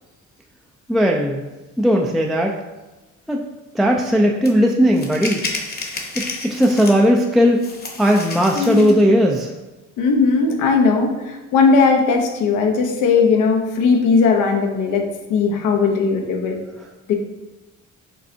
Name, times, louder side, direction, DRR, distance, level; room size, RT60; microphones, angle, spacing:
voice 1, 0.9-1.5 1.8-2.6 3.3-3.4 3.7-5.4 6.1-7.6 8.0-9.5, equal, ahead, 0 dB, 0.4 m, -17 dB
sound 1, 4.4-4.5 4.9-7.2 7.6-9.0, left 3 dB, 30° left, 0.9 m, -31 dB
voice 2, 8.5-8.9 10.0-16.6 17.1-17.2, left 4 dB, 90° left, 2 dB, 0.8 m, -18 dB
5.3 x 3.2 x 2.7 m, 1.1 s
cardioid pair, 90°, 30 cm